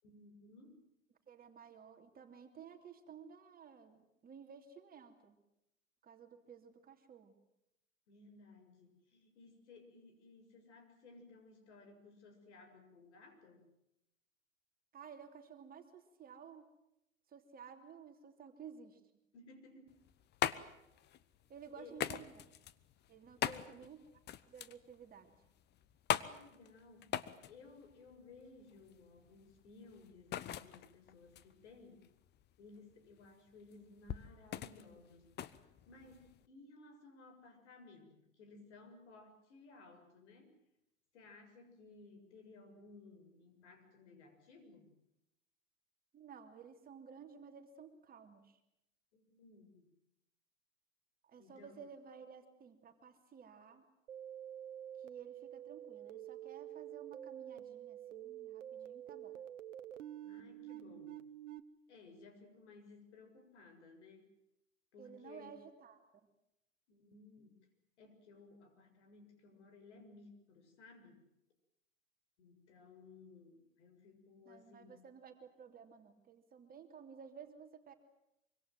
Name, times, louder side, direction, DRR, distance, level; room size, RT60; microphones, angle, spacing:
voice 1, 0.0-0.8 8.1-13.7 19.3-19.9 21.8-22.0 23.4-23.7 26.2-32.1 32.6-40.5 41.1-44.9 49.1-49.9 51.4-51.8 60.2-61.3 61.9-64.3 64.9-65.6 66.9-67.7 68.0-71.2 72.4-75.0, left 3 dB, 60° left, 6 dB, 7.1 m, -58 dB
voice 2, 1.3-5.4 6.0-7.3 14.9-16.7 17.3-19.0 21.5-22.5 23.1-24.0 24.4-25.4 46.1-48.6 51.2-53.8 55.0-59.4 65.0-66.0 74.4-77.9, right 7 dB, 20° right, 5 dB, 3.1 m, -54 dB
sound 1, 19.9-36.4, left 11 dB, 25° left, 1.1 m, -42 dB
sound 2, 54.1-61.6, right 11 dB, 65° right, 1.4 m, -48 dB
25.0 x 25.0 x 7.7 m, 0.86 s
figure-of-eight pair, 100°, 39 cm